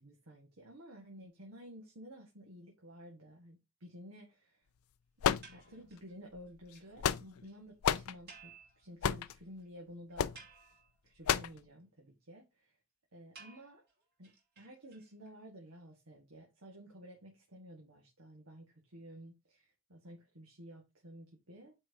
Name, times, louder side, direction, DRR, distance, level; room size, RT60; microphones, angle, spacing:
voice 1, 0.0-4.6 5.5-10.3 11.0-12.8 13.1-13.8 14.2-21.7, equal, 80° right, 1.9 m, -53 dB
sound 1, 5.2-6.0 6.7-7.5 7.8-8.1 9.0-9.4 10.2-10.4 11.3-11.6, left 8 dB, 80° left, 0.4 m, -31 dB
sound 2, 5.4-6.1 6.5-6.6 6.7-6.9 7.2-7.3 7.4-7.6 8.3-9.3 9.6-9.7 10.1-11.1 13.3-15.3, right 5 dB, 45° right, 2.8 m, -57 dB
8.7 x 4.6 x 2.9 m
head